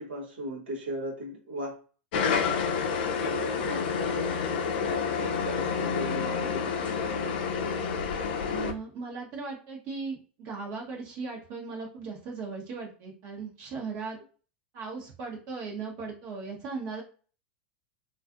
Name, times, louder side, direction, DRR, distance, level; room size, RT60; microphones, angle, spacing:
voice 1, 0.0-1.7 3.1-7.0, right 1 dB, 85° right, -1 dB, 0.9 m, -38 dB
sound 1, 2.1-8.7, left 6 dB, 70° left, 0.4 m, -29 dB
voice 2, 8.4-14.2 14.7-17.0, right 4 dB, 55° right, -1 dB, 0.9 m, -37 dB
2.4 x 2.4 x 2.4 m, 0.38 s
hypercardioid pair, 105°, 6 cm